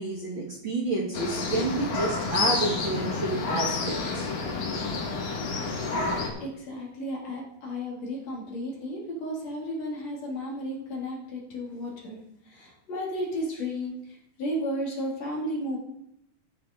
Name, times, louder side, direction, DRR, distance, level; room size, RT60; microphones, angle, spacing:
voice 1, 0.0-4.3, right 2 dB, 50° right, -2 dB, 1.7 m, -30 dB
sound 1, 1.1-6.3, left 3 dB, 85° left, 3.4 m, -29 dB
voice 2, 6.4-15.8, equal, 55° left, -2 dB, 3.3 m, -33 dB
14.0 x 8.6 x 3.6 m, 0.81 s
omnidirectional pair, 3.7 m